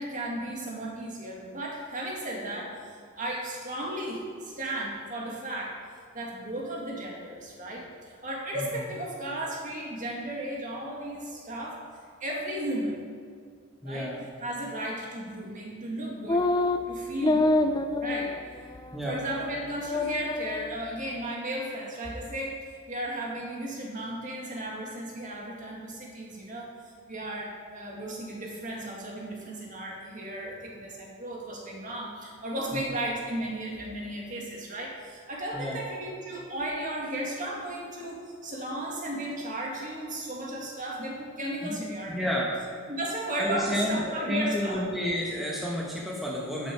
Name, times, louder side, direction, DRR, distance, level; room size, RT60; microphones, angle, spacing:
voice 1, 0.0-5.8 6.1-11.8 12.2-13.0 13.8-14.1 14.4-16.5 16.9-17.6 18.0-18.8 19.0-26.7 27.1-42.4 42.9-44.8, right 1 dB, 35° right, -2 dB, 2.0 m, -35 dB
voice 2, 13.8-14.2 18.9-19.2 32.7-32.8 35.5-35.8 41.6-42.5 43.4-46.7, equal, ahead, -5 dB, 1.1 m, -31 dB
sound 1, 16.3-16.8 17.2-18.4 18.8-18.9 19.3-19.6 19.9-20.7, left 2 dB, 20° left, 0.4 m, -26 dB
11.0 x 8.6 x 4.6 m, 2.2 s
head